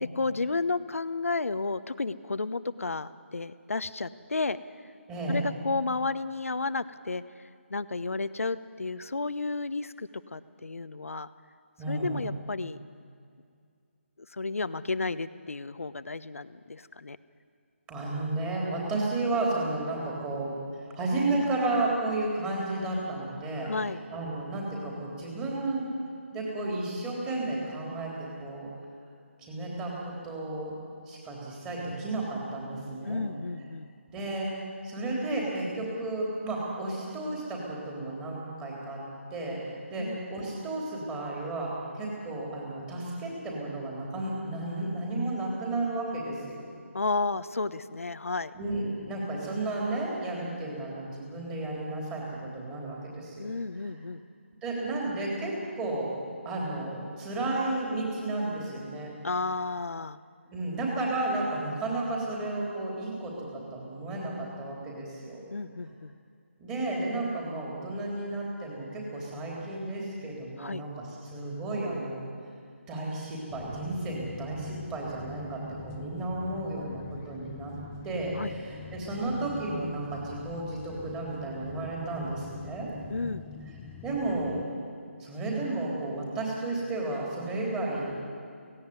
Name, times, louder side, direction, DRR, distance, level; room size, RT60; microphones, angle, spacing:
voice 1, 0.0-4.6 5.3-7.4 7.7-11.3 11.9-12.8 14.3-17.2 23.6-24.0 33.0-33.9 40.0-40.2 46.9-48.5 53.4-54.2 59.2-60.2 65.5-66.1 70.6-70.8 78.4-78.5 83.1-83.5, left 3 dB, 85° left, 14 dB, 0.9 m, -32 dB
voice 2, 5.1-5.4 11.8-12.2 17.9-23.7 24.1-25.9 26.3-28.7 29.4-30.8 31.1-33.2 34.1-34.5 34.8-39.0 39.3-46.7 48.5-53.5 54.6-56.1 56.4-59.1 60.5-65.4 66.6-72.2 72.9-77.7 78.0-82.9 84.0-84.6 85.2-88.2, right 2 dB, 10° right, -3 dB, 3.6 m, -33 dB
sound 1, 73.5-84.7, left 5 dB, 15° left, 0.7 m, -45 dB
17.0 x 16.5 x 9.6 m, 2.3 s
figure-of-eight pair, 165°, 7 cm